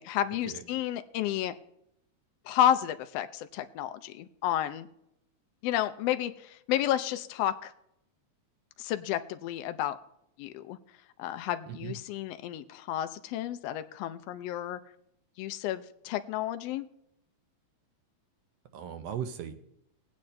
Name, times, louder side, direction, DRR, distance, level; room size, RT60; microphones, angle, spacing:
voice 1, 0.0-1.5 2.5-4.9 5.6-7.7 8.8-10.0 10.4-10.8 11.2-14.8 15.4-16.9, left 12 dB, 80° left, 9 dB, 1.4 m, -31 dB
voice 2, 18.7-19.5, right 9 dB, 70° right, 8 dB, 1.7 m, -37 dB
21.0 x 8.4 x 2.6 m, 0.78 s
omnidirectional pair, 3.3 m